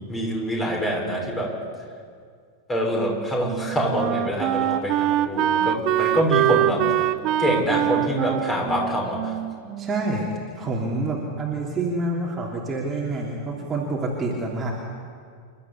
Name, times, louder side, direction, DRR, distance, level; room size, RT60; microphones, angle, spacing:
voice 1, 0.1-1.5 2.7-7.1 7.4-9.3, equal, 15° left, -1 dB, 6.5 m, -25 dB
Wind instrument woodwind instrument, 3.0-10.3, right 13 dB, 40° right, 0.7 m, -24 dB
voice 2, 9.8-14.7, right 2 dB, 20° right, -3 dB, 3.1 m, -27 dB
28.5 x 12.5 x 8.6 m, 2.1 s
figure-of-eight pair, 90°, 0 cm